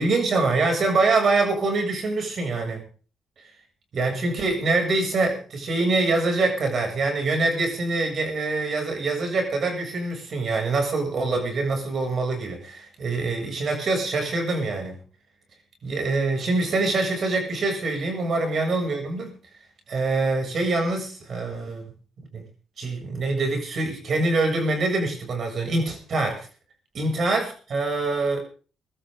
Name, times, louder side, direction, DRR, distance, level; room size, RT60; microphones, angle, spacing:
voice 1, 0.0-2.8 3.9-15.0 15.8-19.3 19.9-21.9 22.3-22.4 22.8-26.5 26.9-28.4, right 3 dB, 50° right, 3 dB, 7.1 m, -24 dB
24.0 x 12.5 x 3.8 m, 0.39 s
cardioid pair, 90°, 0 cm